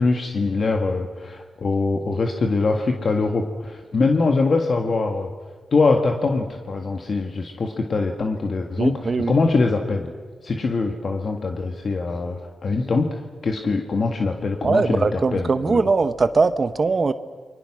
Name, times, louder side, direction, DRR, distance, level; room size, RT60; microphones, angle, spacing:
voice 1, 0.0-5.3 5.7-10.1 10.4-13.1 13.4-15.8, left 3 dB, 50° left, 3 dB, 1.7 m, -23 dB
voice 2, 8.8-9.4 14.6-17.1, right 4 dB, 40° right, 12 dB, 0.9 m, -21 dB
30.0 x 23.0 x 6.2 m, 1.5 s
cardioid pair, 100°, 0 cm